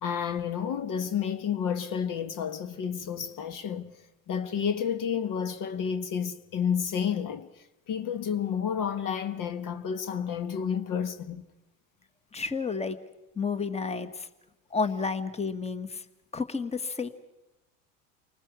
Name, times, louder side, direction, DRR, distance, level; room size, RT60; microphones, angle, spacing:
voice 1, 0.0-3.9 4.3-7.5 7.9-11.4, left 7 dB, 50° left, 1.4 m, -30 dB
voice 2, 12.3-13.0 13.3-14.3 14.7-16.0 16.3-17.1, left 4 dB, 15° left, 1.5 m, -31 dB
29.0 x 20.0 x 6.1 m
hypercardioid pair, 75°, 41 cm